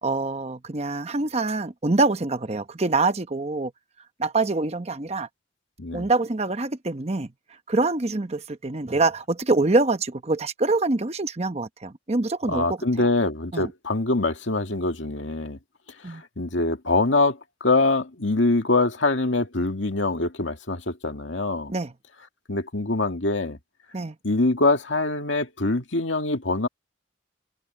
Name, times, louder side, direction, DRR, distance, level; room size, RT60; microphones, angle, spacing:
voice 1, 0.0-3.7 4.2-5.3 5.9-7.3 7.7-13.1 13.5-13.7 16.0-16.2 21.7-21.9 23.9-24.1, right 3 dB, 35° right, 0.9 m, -25 dB
voice 2, 12.5-15.6 16.0-21.7 22.5-23.6 24.2-26.7, left 2 dB, 75° left, 2.2 m, -24 dB
head